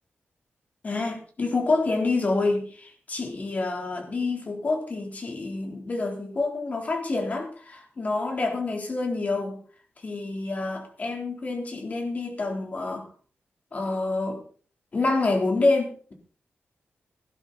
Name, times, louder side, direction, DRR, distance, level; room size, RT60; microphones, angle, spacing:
voice 1, 0.8-9.6 10.0-13.1 13.7-14.4 14.9-16.1, left 3 dB, 35° left, 2 dB, 3.9 m, -27 dB
16.5 x 12.5 x 4.3 m, 0.43 s
wide cardioid pair, 155°, 4 cm